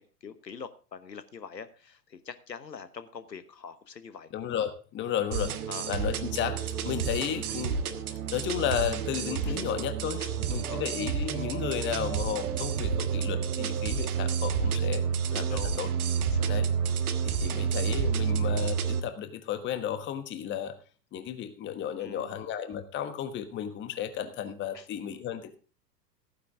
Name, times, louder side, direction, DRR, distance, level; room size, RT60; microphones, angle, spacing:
voice 1, 0.0-4.3 5.7-5.9 7.5-7.6 9.5-9.6 10.2-10.9 15.5-15.8 16.2-16.5 16.8-17.0 17.2-17.3 22.0-22.4 24.7-24.9, left 6 dB, 80° left, 12 dB, 1.3 m, -44 dB
voice 2, 4.3-5.6 5.9-7.8 8.1-15.9 16.5-16.7 17.2-20.7 21.1-25.6, left 9 dB, 20° left, 9 dB, 1.3 m, -33 dB
sound 1, 5.3-19.0, right 7 dB, 60° right, 1.4 m, -30 dB
15.0 x 9.5 x 3.7 m, 0.36 s
figure-of-eight pair, 95°, 50 cm